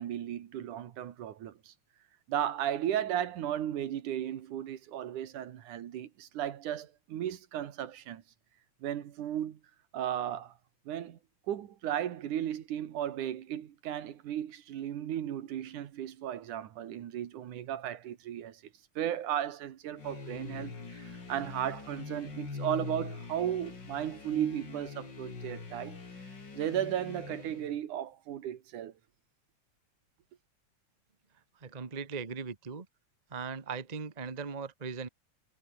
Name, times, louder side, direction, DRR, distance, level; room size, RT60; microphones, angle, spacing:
voice 1, 0.0-1.7 2.3-8.2 8.8-9.6 9.9-10.5 10.9-11.2 11.5-18.6 19.0-26.0 26.5-28.9, right 11 dB, 85° right, 3.1 m, -35 dB
sound 1, 20.0-27.8, left 4 dB, 35° left, 3.8 m, -43 dB
voice 2, 31.5-32.9 33.3-35.1, right 5 dB, 30° right, 0.7 m, -39 dB
omnidirectional pair, 3.4 m